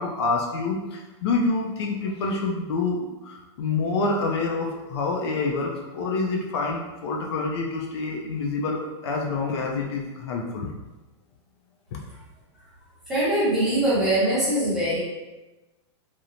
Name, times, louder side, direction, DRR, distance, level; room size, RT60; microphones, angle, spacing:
voice 1, 0.0-10.7 11.9-12.0, left 3 dB, 60° left, 0 dB, 0.4 m, -27 dB
voice 2, 13.1-15.0, right 1 dB, ahead, -12 dB, 0.8 m, -22 dB
2.9 x 2.0 x 2.5 m, 1.1 s
supercardioid pair, 170°, 16 cm